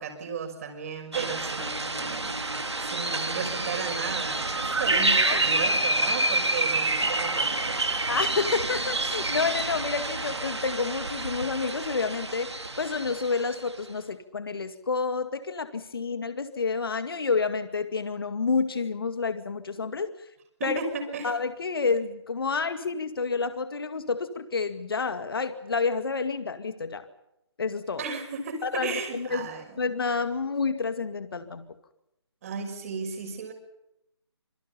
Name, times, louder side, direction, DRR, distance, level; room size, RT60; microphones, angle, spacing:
voice 1, 0.0-8.2 20.6-21.3 28.0-29.8 32.4-33.5, right 5 dB, 35° right, 5 dB, 6.2 m, -35 dB
sound 1, 1.1-13.7, right 2 dB, 85° right, 2.6 m, -28 dB
voice 2, 5.2-5.8 8.1-20.1 20.6-20.8 21.2-27.0 27.6-28.0 28.6-29.5 29.8-31.6, left 4 dB, 60° left, 10 dB, 2.2 m, -29 dB
27.5 x 23.5 x 5.7 m, 0.86 s
figure-of-eight pair, 150°, 14 cm